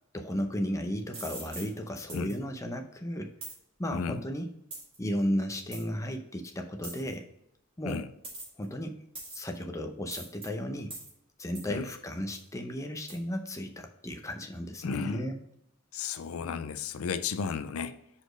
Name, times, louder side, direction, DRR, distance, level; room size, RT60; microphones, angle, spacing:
voice 1, 0.1-3.3 3.8-4.5 5.0-7.3 7.8-8.0 8.6-9.0 9.3-10.9 11.4-15.4, equal, 15° left, 4 dB, 0.6 m, -34 dB
sound 1, 1.1-1.7 2.1-2.3 3.4-3.6 4.7-5.0 5.7-5.8 6.8-7.1 8.2-8.6 9.2-9.6 10.1-10.5 10.9-11.1 11.6-11.7 12.3-12.5 13.1-13.2, right 2 dB, 25° right, 2.4 m, -42 dB
voice 2, 3.9-4.2 7.8-8.1 11.7-11.9 14.8-15.2 15.9-18.0, left 6 dB, 85° left, 11 dB, 0.4 m, -34 dB
5.0 x 4.2 x 5.0 m, 0.78 s
head